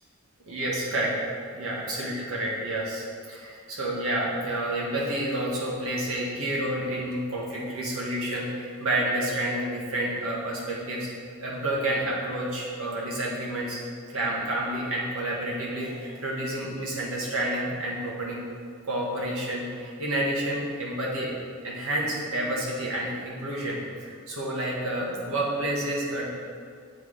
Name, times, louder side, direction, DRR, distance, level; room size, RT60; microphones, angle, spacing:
voice 1, 0.5-1.1 1.5-11.1 11.4-13.8 14.1-18.4 18.9-21.3 21.6-26.3, right 1 dB, 85° right, -4 dB, 1.4 m, -29 dB
8.0 x 4.0 x 3.3 m, 2.1 s
head